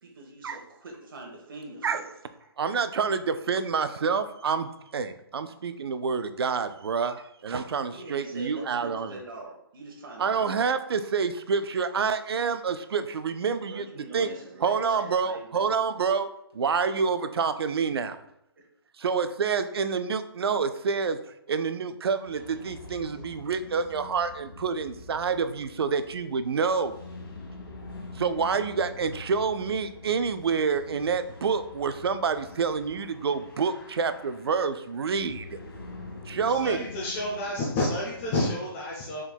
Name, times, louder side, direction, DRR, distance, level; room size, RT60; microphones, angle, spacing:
voice 1, 0.0-2.1 7.8-10.3 13.7-15.8 18.6-18.7, right 2 dB, 60° right, 0 dB, 1.1 m, -43 dB
voice 2, 2.6-9.2 10.2-14.3 14.6-18.2 19.0-21.2 21.5-27.0 28.1-35.6 36.3-36.9, right 5 dB, 75° right, 11 dB, 0.4 m, -28 dB
sound 1, 22.2-38.4, left 3 dB, 70° left, 1.2 m, -45 dB
voice 3, 36.6-39.2, left 1 dB, 25° left, -4 dB, 0.6 m, -29 dB
4.5 x 3.6 x 2.2 m, 0.79 s
hypercardioid pair, 150°, 13 cm